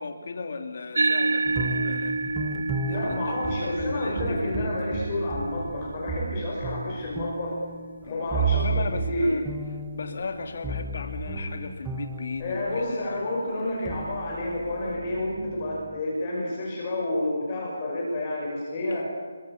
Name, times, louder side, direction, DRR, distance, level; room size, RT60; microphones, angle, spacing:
voice 1, 0.0-2.2 2.9-4.7 8.0-9.4 9.9-13.5 18.9-19.0, left 4 dB, 35° left, 6 dB, 2.8 m, -36 dB
sound 1, 0.9-9.7, right 3 dB, 75° right, 1.8 m, -31 dB
sound 2, 1.5-12.9 13.6-16.0, right 4 dB, 5° right, 0.9 m, -33 dB
voice 2, 2.9-7.6 8.1-8.7 9.1-9.4 12.4-19.0, left 1 dB, 20° left, -3 dB, 5.7 m, -29 dB
29.0 x 23.5 x 7.3 m, 1.5 s
hypercardioid pair, 180°, 0 cm